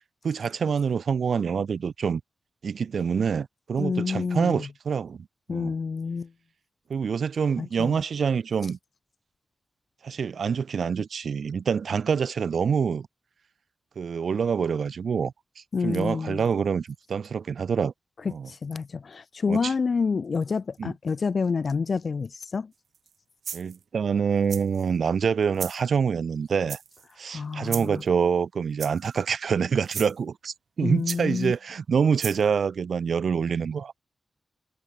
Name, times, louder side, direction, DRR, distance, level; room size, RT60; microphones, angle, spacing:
voice 1, 0.2-2.2 2.6-5.7 6.9-8.8 10.0-13.1 14.0-17.9 18.3-18.5 19.5-19.7 20.8-20.9 23.5-26.8 27.2-34.0, right 6 dB, 70° right, 0.5 m, -26 dB
voice 2, 3.8-4.7 5.5-6.3 7.6-8.0 15.7-16.4 18.2-22.7 27.3-28.0 30.8-31.5, left 5 dB, 50° left, 0.5 m, -28 dB
sound 1, 22.9-23.1 23.4-23.8 24.5-24.9 25.5-25.8 26.7-27.1 27.7-28.0 28.8-29.2 29.8-30.1 31.1-31.5 32.2-32.4, right 7 dB, 90° right, 2.9 m, -35 dB
wide cardioid pair, 130°, 0 cm